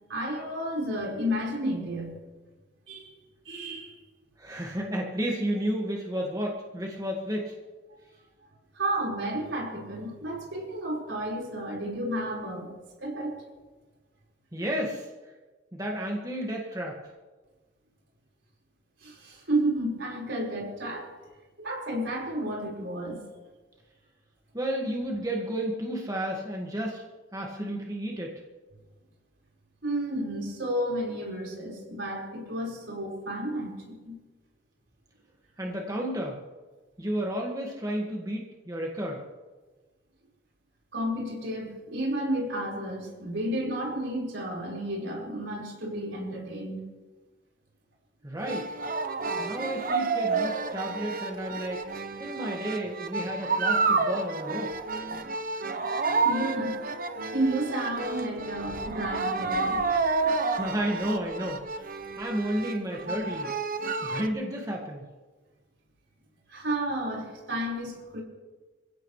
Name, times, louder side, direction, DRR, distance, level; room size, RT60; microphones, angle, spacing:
voice 1, 0.1-2.2 2.9-3.1 3.4-4.0 8.7-13.4 19.0-21.1 21.6-23.2 29.8-34.2 40.9-46.8 55.9-56.0 56.2-56.8 57.3-59.8 66.5-68.2, right 1 dB, 80° right, -2 dB, 4.9 m, -32 dB
voice 2, 4.4-7.6 14.5-15.1 15.7-17.0 24.5-27.0 27.3-28.4 35.6-36.4 37.0-39.2 48.2-48.7 49.4-51.8 52.2-54.7 60.5-61.9 62.2-63.5 64.0-65.0, equal, 20° right, -1 dB, 1.9 m, -32 dB
sound 1, 48.4-64.3, right 4 dB, 50° right, 1.0 m, -30 dB
28.0 x 16.0 x 3.3 m, 1.3 s
head